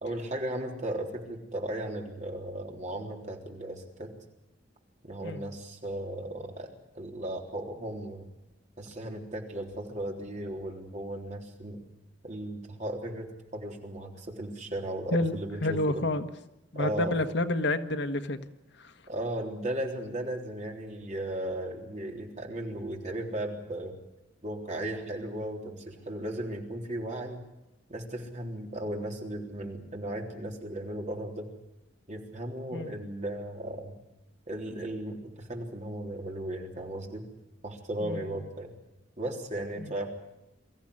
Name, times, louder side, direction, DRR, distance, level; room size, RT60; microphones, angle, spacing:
voice 1, 0.0-4.1 5.0-6.7 6.9-8.3 8.8-11.8 12.2-16.0 16.7-17.2 19.1-24.0 24.4-27.4 27.9-31.5 32.1-33.9 34.5-37.2 37.6-38.7 39.2-40.1, right 1 dB, 40° right, 1 dB, 3.7 m, -36 dB
voice 2, 15.1-16.3 16.7-18.4 18.8-18.9 32.7-32.9 38.0-38.4 39.8-39.9, left 2 dB, 65° left, 8 dB, 1.4 m, -29 dB
24.0 x 15.0 x 9.9 m, 0.91 s
head